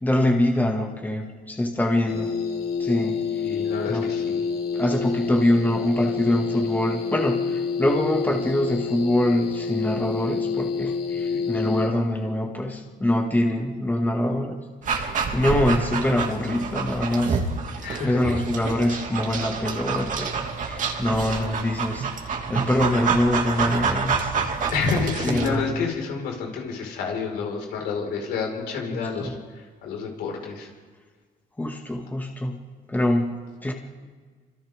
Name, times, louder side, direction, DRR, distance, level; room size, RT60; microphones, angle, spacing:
voice 1, 0.0-2.4 2.8-3.2 3.9-4.1 4.7-14.6 14.9-17.4 18.0-20.3 20.6-22.1 22.5-24.5 25.2-25.7 29.2-29.3 31.6-32.6 32.9-33.7, left 1 dB, 10° left, 1 dB, 2.3 m, -24 dB
sound 1, 2.1-11.9, left 5 dB, 65° left, 2.4 m, -28 dB
voice 2, 3.4-4.5 11.1-11.4 15.5-15.7 17.8-18.4 24.7-30.7, left 5 dB, 85° left, 0 dB, 5.4 m, -29 dB
Dog, 14.8-25.6, right 5 dB, 50° right, 2.6 m, -28 dB
30.0 x 26.5 x 3.8 m, 1.5 s
cardioid pair, 110°, 17 cm